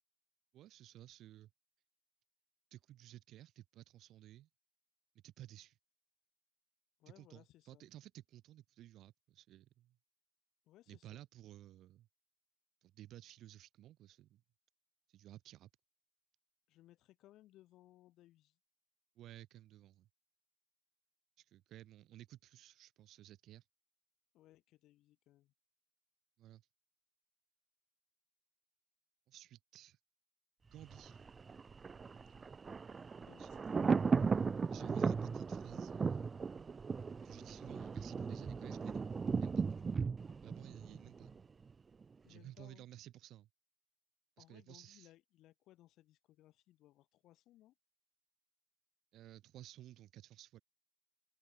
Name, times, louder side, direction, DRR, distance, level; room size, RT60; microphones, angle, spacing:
voice 1, 0.5-1.5 2.7-4.5 5.2-5.8 7.2-10.0 10.9-12.1 12.8-14.4 15.1-15.7 19.2-20.1 21.4-23.6 26.4-26.7 29.3-30.0 30.6-31.2 33.4-33.5 34.7-36.4 37.2-39.0 39.4-39.7 40.4-41.5 42.3-43.5 44.4-45.1 49.1-50.6, right 13 dB, 80° right, 4.4 m, -55 dB
voice 2, 7.0-7.9 10.7-11.2 16.7-18.6 24.3-25.5 33.2-34.2 42.2-42.9 44.4-47.7, left 15 dB, 90° left, 4.5 m, -64 dB
Thunder, 30.8-41.7 42.0-42.1, right 5 dB, 35° right, 0.3 m, -37 dB
cardioid pair, 90°, 0 cm